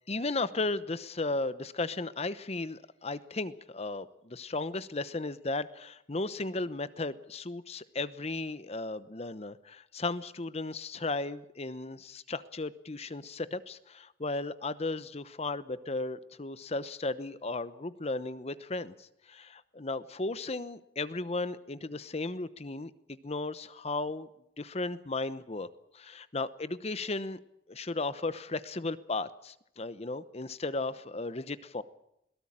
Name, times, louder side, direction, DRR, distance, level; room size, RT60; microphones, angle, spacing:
voice 1, 0.1-24.3 24.6-25.7 25.9-27.4 27.7-31.8, left 3 dB, 35° left, 14 dB, 0.9 m, -35 dB
22.0 x 17.5 x 8.9 m, 0.80 s
head